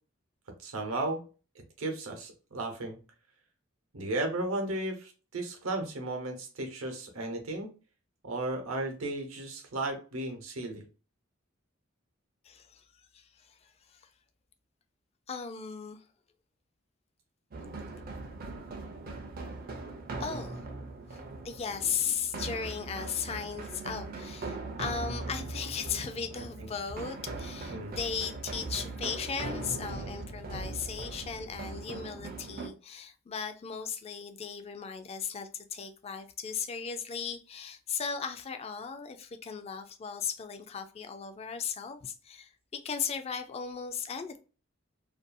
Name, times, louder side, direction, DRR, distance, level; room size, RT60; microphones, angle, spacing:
voice 1, 0.6-1.2 1.8-3.0 3.9-7.7 8.2-10.8 27.7-27.9, right 2 dB, 85° right, 0.8 m, -34 dB
voice 2, 12.4-12.8 13.1-14.1 15.3-16.0 17.9-18.0 20.2-20.7 21.1-44.4, left 6 dB, 30° left, 0.3 m, -37 dB
sound 1, 17.5-32.7, right 3 dB, 45° right, 0.4 m, -40 dB
2.6 x 2.2 x 2.5 m
head